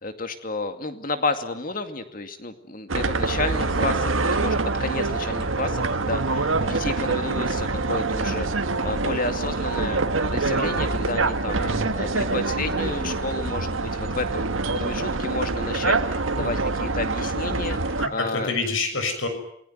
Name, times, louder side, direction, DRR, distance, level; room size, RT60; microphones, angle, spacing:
voice 1, 0.0-11.7 12.0-14.5 14.7-18.5, left 3 dB, 45° left, 8 dB, 2.3 m, -31 dB
sound 1, 2.9-18.1, right 3 dB, 85° right, 1.7 m, -25 dB
voice 2, 18.0-19.3, left 3 dB, 80° left, 8 dB, 6.8 m, -27 dB
28.0 x 19.0 x 9.4 m, 0.72 s
head